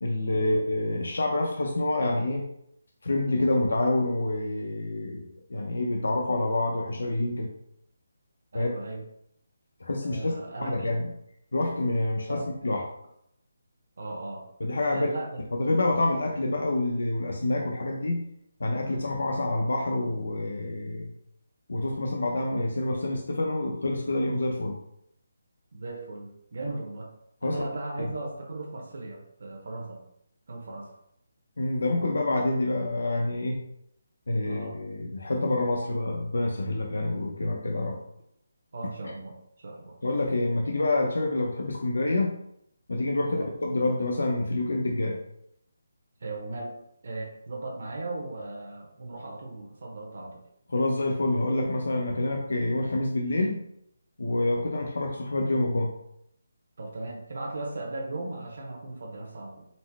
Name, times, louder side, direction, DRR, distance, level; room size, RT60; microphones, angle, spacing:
voice 1, 0.0-2.5 3.0-7.5 8.5-8.7 9.8-10.3 10.6-11.1 11.5-12.8 14.6-15.1 15.5-18.3 18.6-21.1 21.7-24.8 27.4-27.6 28.0-28.1 31.6-33.6 34.3-38.0 40.0-42.3 42.9-45.2 50.7-53.6 54.2-55.9, left 2 dB, 85° left, 1 dB, 0.6 m, -27 dB
voice 2, 8.5-9.0 10.0-10.9 12.3-12.5 14.0-14.5 14.9-15.4 22.0-22.1 25.7-27.1 27.4-30.0 30.5-31.0 34.5-34.8 38.7-40.0 43.2-43.5 46.2-46.7 47.0-50.4 56.8-59.7, right 2 dB, 45° right, -1 dB, 0.8 m, -37 dB
4.2 x 2.1 x 4.5 m, 0.75 s
hypercardioid pair, 180°, 0 cm